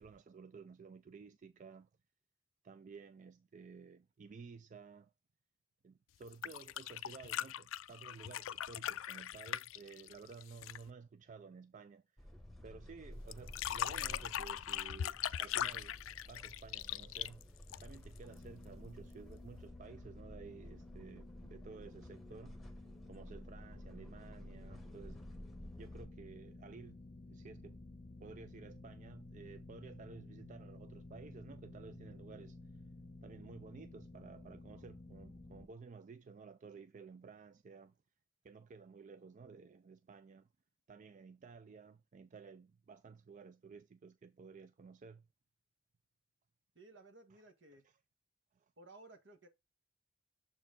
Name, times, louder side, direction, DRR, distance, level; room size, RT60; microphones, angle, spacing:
voice 1, 0.0-1.9 2.6-5.1 5.8-12.3 12.6-22.6 23.1-25.2 25.8-27.0 27.3-27.8 28.2-32.6 33.2-38.0 38.4-40.5 40.9-45.3 48.6-48.7, right 5 dB, 40° right, 0.4 m, -54 dB
sound 1, 6.2-10.9 13.3-18.2 19.6-19.7, left 11 dB, 90° left, 0.4 m, -40 dB
sound 2, 12.2-26.1, left 1 dB, ahead, 1.2 m, -53 dB
sound 3, 18.2-35.7, left 2 dB, 25° left, 0.8 m, -54 dB
voice 2, 46.7-47.9 48.8-49.5, right 2 dB, 65° right, 1.4 m, -57 dB
7.1 x 4.5 x 3.7 m
head